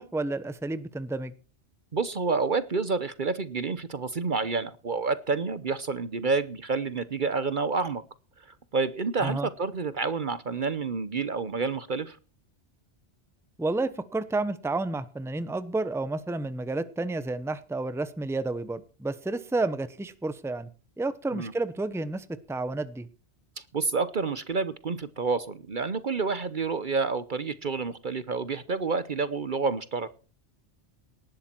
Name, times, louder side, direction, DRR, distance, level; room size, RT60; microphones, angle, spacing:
voice 1, 0.0-1.3 9.2-9.5 13.6-20.7 21.0-23.1, right 2 dB, 5° right, 14 dB, 0.9 m, -31 dB
voice 2, 1.9-8.0 8.7-12.2 21.3-21.5 23.6-30.1, right 4 dB, 50° right, 15 dB, 1.0 m, -29 dB
19.0 x 11.5 x 4.5 m, 0.36 s
omnidirectional pair, 1.2 m